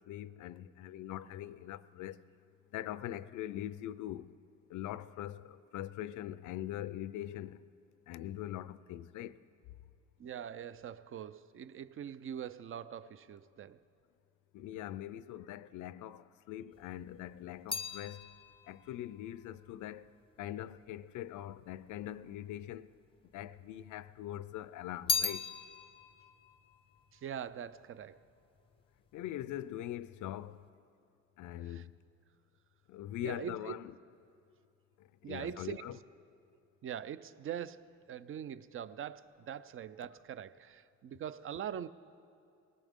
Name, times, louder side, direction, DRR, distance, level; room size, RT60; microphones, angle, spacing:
voice 1, 0.1-2.2 2.7-4.3 4.7-7.6 8.1-9.4 14.5-18.3 18.7-20.1 20.4-22.9 23.3-25.5 29.1-30.6 31.4-31.9 32.9-33.9 35.2-36.0, left 12 dB, 80° left, 0.5 m, -42 dB
voice 2, 10.2-13.8 27.1-28.2 31.6-31.9 33.2-33.8 35.2-36.0 36.8-41.9, right 9 dB, 45° right, 0.5 m, -43 dB
sound 1, 16.7-21.2 21.9-22.7 23.0-24.2 24.5-28.0 28.3-28.8, left 5 dB, 20° left, 0.6 m, -39 dB
20.0 x 16.5 x 3.7 m
cardioid pair, 90°, 30 cm